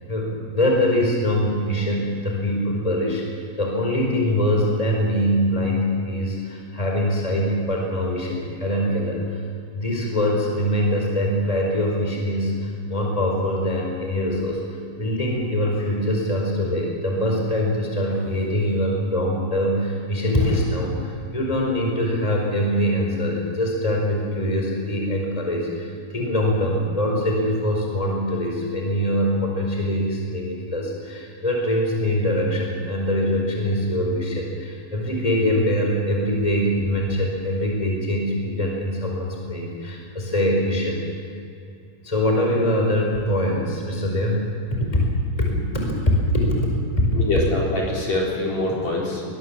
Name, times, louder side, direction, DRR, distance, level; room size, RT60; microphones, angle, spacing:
voice 1, 0.1-9.4 9.7-14.6 15.0-41.0 42.0-45.0 45.4-45.5 45.7-46.6 47.0-47.2, equal, 10° left, 0 dB, 4.4 m, -23 dB
voice 2, 47.1-49.2, left 2 dB, 50° left, -3 dB, 5.3 m, -24 dB
22.5 x 21.0 x 7.5 m, 2.6 s
omnidirectional pair, 4.2 m